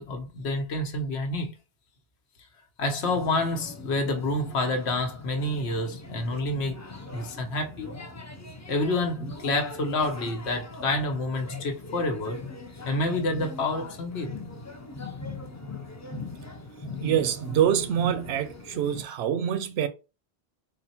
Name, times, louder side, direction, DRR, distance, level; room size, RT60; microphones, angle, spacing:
voice 1, 0.0-1.5 2.8-6.8 7.1-7.9 8.7-12.4 12.8-14.3, left 2 dB, 90° left, 1.1 m, -28 dB
sound 1, 3.0-19.0, left 3 dB, 25° left, 0.4 m, -41 dB
voice 2, 17.0-19.9, right 9 dB, 80° right, 0.8 m, -25 dB
3.9 x 2.1 x 4.1 m
omnidirectional pair, 1.1 m